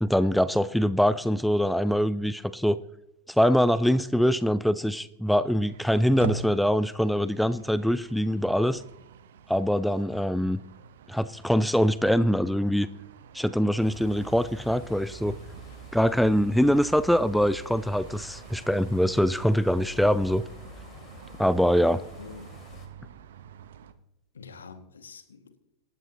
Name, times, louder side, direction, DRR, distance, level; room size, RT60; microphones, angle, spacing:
voice 1, 0.0-2.8 3.3-8.8 9.5-10.6 11.1-12.9 13.3-15.4 15.9-20.4 21.4-22.0, equal, ahead, 0.5 m, -23 dB
sound 1, 5.6-23.9, right 8 dB, 60° right, 1.1 m, -45 dB
sound 2, 13.8-22.9, left 1 dB, 30° left, 3.2 m, -47 dB
voice 2, 22.2-22.6 24.3-25.6, left 5 dB, 70° left, 2.0 m, -46 dB
26.5 x 13.0 x 3.0 m
figure-of-eight pair, 90°, 0 cm